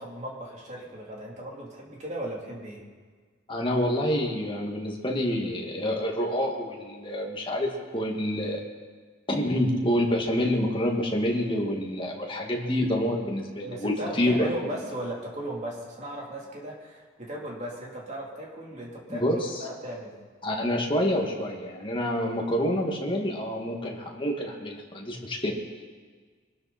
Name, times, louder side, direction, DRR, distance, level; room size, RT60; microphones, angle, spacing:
voice 1, 0.0-2.8 13.6-20.1, right 1 dB, 40° right, -3 dB, 3.4 m, -37 dB
voice 2, 3.5-8.6 9.3-14.5 19.1-19.5 20.4-25.6, equal, 25° left, 0 dB, 2.1 m, -27 dB
23.5 x 12.5 x 4.4 m, 1.5 s
head